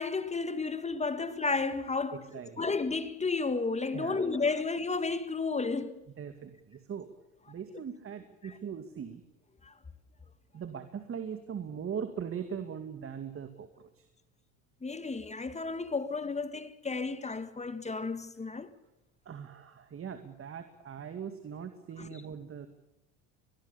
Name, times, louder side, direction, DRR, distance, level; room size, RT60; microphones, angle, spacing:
voice 1, 0.0-2.3 2.6-6.0 9.6-9.7 14.8-18.7 22.0-22.1, left 4 dB, 20° left, 1.7 m, -32 dB
voice 2, 2.1-2.7 3.9-4.4 6.2-7.1 7.5-9.2 10.5-14.1 19.3-22.7, right 7 dB, 35° right, 2.3 m, -40 dB
24.0 x 20.5 x 7.0 m
supercardioid pair, 95°, 36 cm